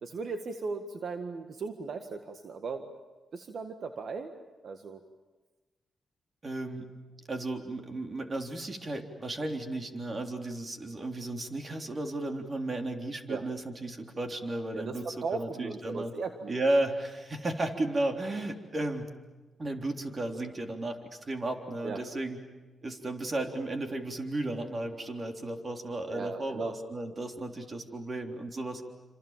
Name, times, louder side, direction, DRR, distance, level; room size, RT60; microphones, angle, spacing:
voice 1, 0.0-2.8 3.3-4.3 4.6-5.0 13.3-13.5 14.7-16.5 21.8-22.0 26.1-26.7, right 4 dB, 65° right, 6 dB, 1.7 m, -37 dB
voice 2, 6.4-6.9 7.3-16.1 16.5-19.1 19.6-22.4 22.8-28.8, right 2 dB, 35° right, 3 dB, 3.6 m, -34 dB
28.0 x 27.0 x 7.5 m, 1.2 s
cardioid pair, 90°, 0 cm